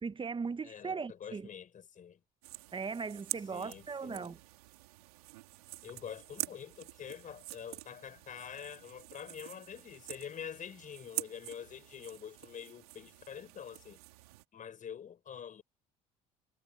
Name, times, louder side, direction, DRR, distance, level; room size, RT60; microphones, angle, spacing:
voice 1, 0.0-1.5 2.7-4.4, right 5 dB, 25° right, 1.4 m, -38 dB
voice 2, 0.6-2.2 3.5-4.3 5.8-14.0 14.5-15.6, left 8 dB, 45° left, 5.2 m, -46 dB
sound 1, 2.4-14.4, right 19 dB, 80° right, 3.9 m, -46 dB
hypercardioid pair, 60°, 19 cm